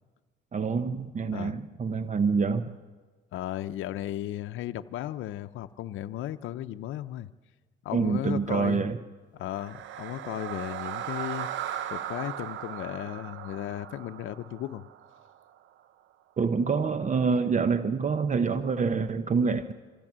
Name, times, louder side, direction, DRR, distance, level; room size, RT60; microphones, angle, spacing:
voice 1, 0.5-2.7 7.9-9.0 16.4-19.7, right 5 dB, 40° right, 11 dB, 0.9 m, -26 dB
voice 2, 3.3-7.3 7.8-8.9 9.3-11.5 11.9-14.9, left 13 dB, 80° left, 9 dB, 0.6 m, -35 dB
sound 1, 9.4-15.6, right 10 dB, 80° right, 0.8 m, -38 dB
25.0 x 15.0 x 7.4 m, 1.4 s
cardioid pair, 90°, 20 cm